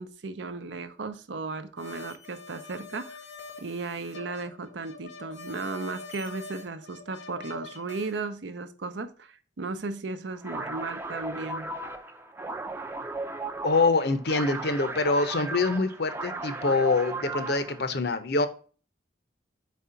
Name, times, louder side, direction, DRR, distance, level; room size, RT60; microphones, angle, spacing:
voice 1, 0.0-3.2 3.6-11.7, right 3 dB, 75° right, 11 dB, 0.7 m, -35 dB
sound 1, 1.8-8.1, left 3 dB, 75° left, 1.1 m, -44 dB
sound 2, 10.4-17.8, right 2 dB, 15° right, 0.5 m, -36 dB
voice 2, 13.6-18.5, left 3 dB, 60° left, 10 dB, 0.7 m, -25 dB
4.6 x 4.2 x 5.0 m, 0.38 s
head